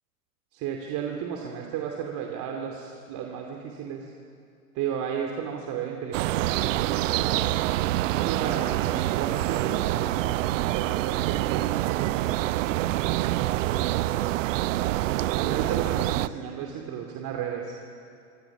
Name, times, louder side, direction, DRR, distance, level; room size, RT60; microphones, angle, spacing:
voice 1, 0.5-4.1 4.7-7.5 8.0-12.4 13.1-14.0 15.3-17.7, right 8 dB, 40° right, 2 dB, 2.6 m, -34 dB
sound 1, 6.1-16.3, right 15 dB, 55° right, 0.7 m, -26 dB
26.5 x 25.5 x 6.1 m, 2.4 s
figure-of-eight pair, 90°, 46 cm